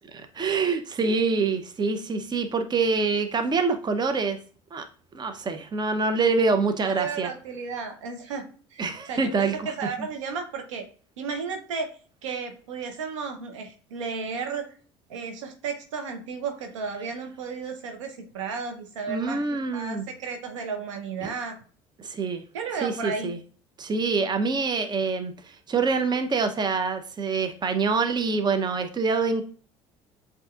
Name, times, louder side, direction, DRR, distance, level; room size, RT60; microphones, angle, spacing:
voice 1, 0.1-4.4 4.7-4.9 5.1-7.3 8.8-9.7 19.1-20.1 21.2-21.3 22.0-22.4 22.8-23.4 23.8-29.4, right 4 dB, 25° right, 7 dB, 0.7 m, -25 dB
voice 2, 6.8-8.5 8.7-10.8 11.2-11.9 12.2-14.7 15.1-19.4 19.7-21.6 22.5-23.3, right 5 dB, 80° right, 5 dB, 0.9 m, -33 dB
7.7 x 2.8 x 2.4 m, 0.41 s
hypercardioid pair, 65°, 16 cm